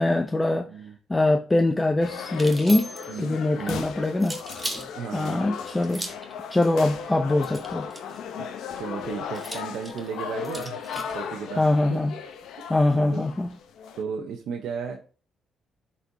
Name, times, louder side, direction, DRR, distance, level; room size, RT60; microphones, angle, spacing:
voice 1, 0.0-0.7 1.1-2.9 3.2-4.4 5.1-6.0 6.5-7.9 11.6-12.1 12.7-13.5, left 2 dB, 15° left, 5 dB, 0.6 m, -23 dB
sound 1, 2.0-14.0, left 7 dB, 80° left, 0.8 m, -37 dB
sound 2, 2.3-3.2 4.2-4.9 5.8-6.3 7.4-8.2 9.3-11.2, right 1 dB, 10° right, 1.3 m, -36 dB
voice 2, 3.1-3.9 4.9-5.4 8.4-8.5 8.7-10.8 11.1-11.6 11.9-12.0 12.6-13.2 14.0-15.0, right 6 dB, 80° right, 3 dB, 0.8 m, -35 dB
11.5 x 4.3 x 2.7 m, 0.38 s
cardioid pair, 90°, 0 cm